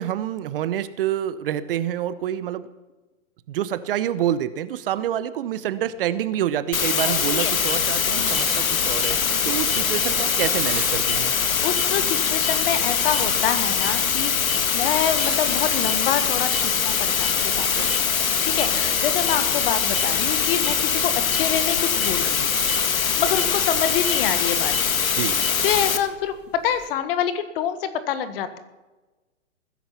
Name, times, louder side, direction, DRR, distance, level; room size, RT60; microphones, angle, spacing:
voice 1, 0.0-2.7 3.5-11.3 25.2-25.4, right 11 dB, 40° right, 14 dB, 0.8 m, -27 dB
sound 1, 6.7-26.0, left 7 dB, 80° left, 1.7 m, -22 dB
voice 2, 7.0-7.5 8.2-8.5 9.3-9.6 11.6-18.0 18.4-22.5 23.0-24.7 25.6-28.6, left 9 dB, 45° left, 11 dB, 1.6 m, -27 dB
sound 2, 7.6-26.9, right 1 dB, 5° right, 5.9 m, -39 dB
20.5 x 10.5 x 5.8 m, 1.1 s
hypercardioid pair, 135°, 41 cm